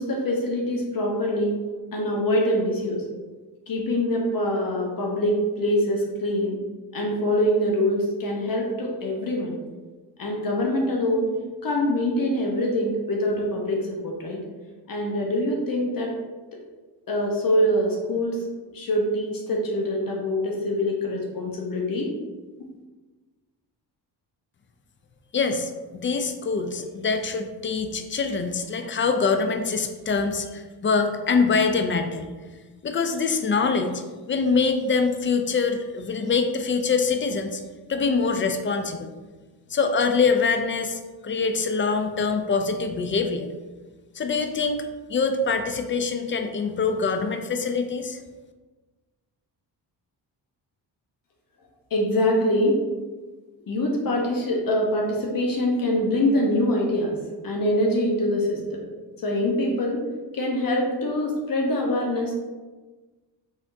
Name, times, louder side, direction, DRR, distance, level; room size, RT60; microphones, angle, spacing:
voice 1, 0.0-1.5 1.9-3.0 3.7-6.6 6.9-9.5 10.2-11.3 11.6-14.4 14.9-16.1 17.1-18.4 18.7-22.1 51.9-52.8 53.7-57.1 57.4-58.8 59.2-60.0 60.3-62.4, left 1 dB, 50° left, -1 dB, 0.9 m, -24 dB
voice 2, 25.3-32.2 32.8-34.0 34.3-37.6 37.9-39.1 39.7-43.5 44.1-44.8 45.1-48.2, left 4 dB, 30° left, 7 dB, 0.4 m, -24 dB
3.5 x 3.5 x 2.6 m, 1.3 s
cardioid pair, 70°, 44 cm